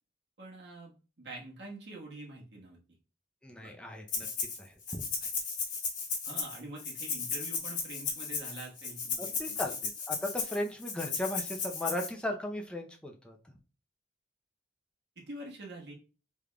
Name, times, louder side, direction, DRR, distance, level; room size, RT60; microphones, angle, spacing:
voice 1, 0.4-2.8 3.6-3.7 5.2-5.3 6.2-9.6 15.2-15.9, right 2 dB, 70° right, -2 dB, 1.3 m, -46 dB
voice 2, 3.4-4.3 4.6-5.0 9.2-13.4, left 1 dB, 5° left, 1 dB, 0.5 m, -37 dB
Rattle (instrument), 4.1-4.6 4.9-12.1, left 5 dB, 45° left, 1.1 m, -35 dB
3.6 x 3.4 x 2.2 m, 0.35 s
head